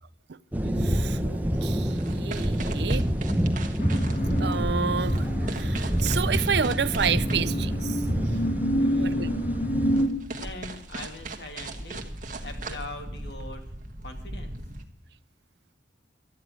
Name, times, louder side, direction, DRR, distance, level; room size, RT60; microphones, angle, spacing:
sound 1, 0.5-10.0, equal, 10° right, 1.0 m, -27 dB
voice 1, 0.8-3.1 4.4-5.3 5.5-8.0 8.9-9.3, right 6 dB, 60° right, 0.5 m, -30 dB
sound 2, 1.5-14.8, right 2 dB, 45° right, 1.6 m, -39 dB
sound 3, 3.8-10.1, equal, 45° left, 1.9 m, -29 dB
voice 2, 8.8-9.3 10.3-12.0 12.4-13.6 14.0-14.6, left 2 dB, 65° left, 2.6 m, -41 dB
13.0 x 9.9 x 9.3 m
head